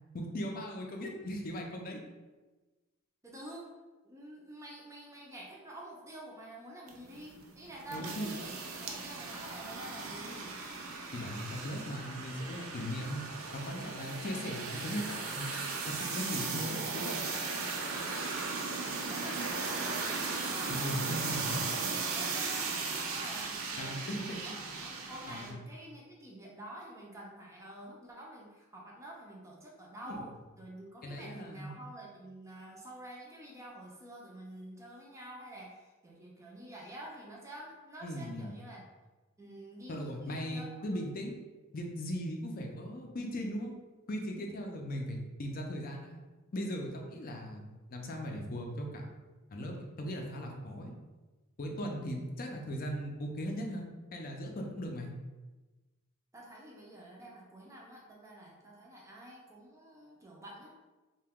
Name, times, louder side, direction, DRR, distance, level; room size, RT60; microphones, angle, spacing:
voice 1, 0.1-2.0 7.9-8.3 11.1-13.2 13.5-15.5 15.9-17.3 20.7-21.4 23.8-24.6 25.3-25.6 30.1-30.2 31.0-31.7 38.0-38.6 39.9-41.3 41.7-43.7 44.1-46.2 46.5-49.1 49.5-50.9 51.6-55.1, equal, 45° left, 2 dB, 0.5 m, -38 dB
voice 2, 3.2-3.7 4.0-10.5 18.8-21.4 21.8-24.5 24.8-38.8 39.4-40.6 40.9-41.1 56.3-60.7, right 1 dB, 15° right, -3 dB, 0.4 m, -48 dB
sound 1, 6.9-25.5, right 4 dB, 80° right, 0.5 m, -37 dB
2.8 x 2.2 x 3.5 m, 1.2 s
head